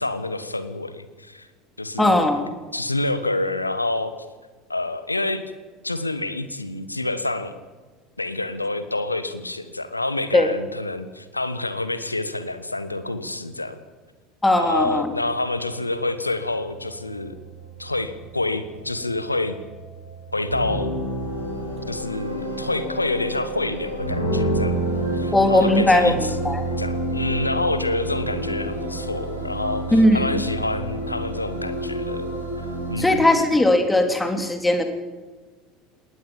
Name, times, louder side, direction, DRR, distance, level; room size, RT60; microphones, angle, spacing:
voice 1, 0.0-1.5 1.8-2.3 2.7-4.1 4.7-5.4 5.8-7.5 8.2-13.8 14.6-17.3 17.8-19.6 20.3-20.9 21.9-24.8 25.1-26.4 26.8-32.4 32.9-33.4, left 2 dB, 85° left, 12 dB, 1.3 m, -27 dB
voice 2, 2.0-2.5 10.3-10.5 14.4-15.1 25.3-26.2 26.4-26.6 29.9-30.4 33.0-34.8, left 1 dB, 10° left, 6 dB, 3.2 m, -18 dB
sound 1, 14.7-33.0, right 1 dB, 90° right, 5.6 m, -29 dB
20.5 x 18.5 x 7.3 m, 1.4 s
figure-of-eight pair, 70°, 0 cm